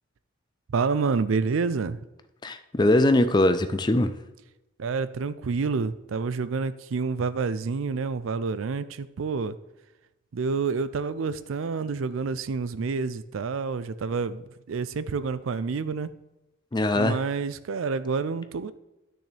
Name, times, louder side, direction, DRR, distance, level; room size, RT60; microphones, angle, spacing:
voice 1, 0.7-2.0 4.8-9.6 10.3-16.1 17.0-18.7, right 4 dB, 90° right, 15 dB, 0.4 m, -28 dB
voice 2, 2.4-4.1 16.7-17.2, left 1 dB, 20° left, 10 dB, 0.4 m, -21 dB
10.5 x 6.3 x 3.4 m, 0.98 s
head